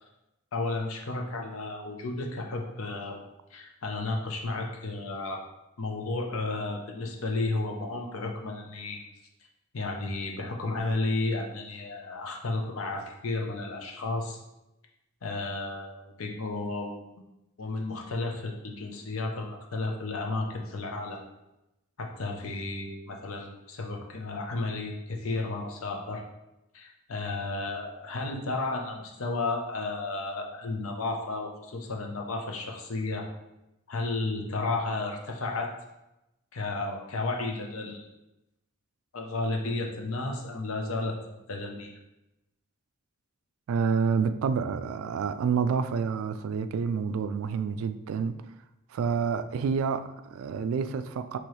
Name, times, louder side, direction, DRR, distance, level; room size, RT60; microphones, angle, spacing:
voice 1, 0.5-3.2 3.5-5.4 5.8-9.0 9.7-14.4 15.2-16.9 17.6-21.2 22.0-26.2 26.7-33.3 33.9-35.7 36.5-38.1 39.1-41.9, left 2 dB, 90° left, 0.7 m, -33 dB
voice 2, 43.7-48.4 48.9-51.4, right 6 dB, 85° right, 0.3 m, -28 dB
4.6 x 3.0 x 3.0 m
head